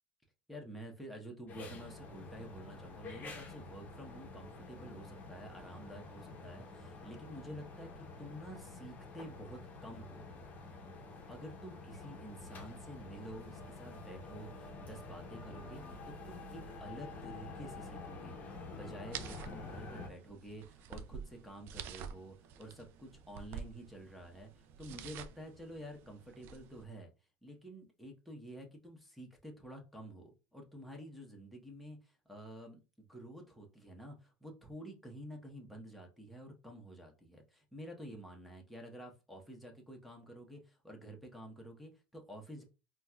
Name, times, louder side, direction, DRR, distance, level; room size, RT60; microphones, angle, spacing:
voice 1, 0.5-10.3 11.3-18.4 18.7-27.1 27.4-42.6, right 1 dB, ahead, 1 dB, 1.1 m, -50 dB
sound 1, 1.5-20.1, left 3 dB, 35° left, 0.9 m, -48 dB
sound 2, 19.1-26.8, right 7 dB, 55° right, 0.4 m, -49 dB
3.9 x 2.4 x 2.3 m, 0.30 s
supercardioid pair, 100°, 4 cm